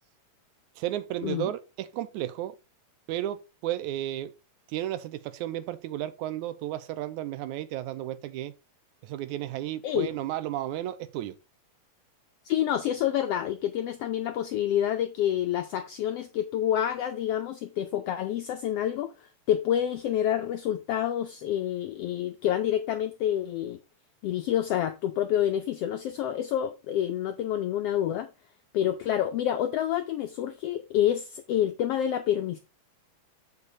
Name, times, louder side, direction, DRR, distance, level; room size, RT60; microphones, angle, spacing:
voice 1, 0.8-2.6 3.1-4.3 4.7-8.5 9.0-11.4, right 13 dB, 90° right, 2.1 m, -33 dB
voice 2, 12.4-23.8 24.2-28.3 28.7-32.6, left 11 dB, 80° left, 1.4 m, -28 dB
7.0 x 6.7 x 4.0 m
omnidirectional pair, 3.4 m